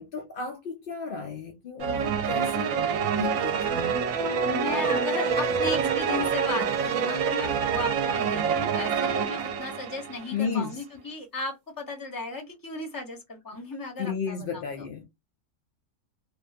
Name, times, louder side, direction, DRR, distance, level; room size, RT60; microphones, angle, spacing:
voice 1, 0.0-2.9 3.2-3.9 10.3-10.8 14.0-15.1, left 6 dB, 85° left, 0.4 m, -33 dB
sound 1, 1.8-10.4, right 6 dB, 70° right, 0.9 m, -26 dB
voice 2, 4.4-14.9, left 3 dB, 20° left, 0.6 m, -35 dB
2.4 x 2.2 x 2.4 m
omnidirectional pair, 1.5 m